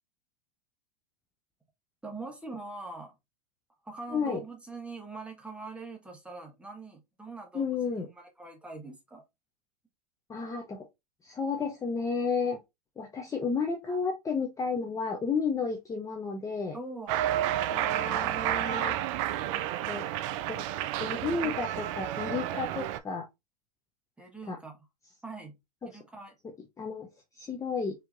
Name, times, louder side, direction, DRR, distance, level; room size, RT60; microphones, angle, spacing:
voice 1, 2.0-3.1 3.8-9.2 16.7-17.2 24.2-24.8 25.2-25.6 25.8-26.3, right 3 dB, 5° right, 1.2 m, -43 dB
voice 2, 7.5-8.1 10.3-10.9 11.2-12.6 13.0-16.8 17.7-19.0 19.5-20.1 20.5-20.6 21.0-23.3 24.5-24.6 25.8-26.0 26.8-27.1 27.4-27.9, left 5 dB, 15° left, 0.6 m, -32 dB
Cheering, 17.1-23.0, right 12 dB, 50° right, 0.4 m, -31 dB
4.5 x 2.9 x 2.5 m
hypercardioid pair, 105°, 21 cm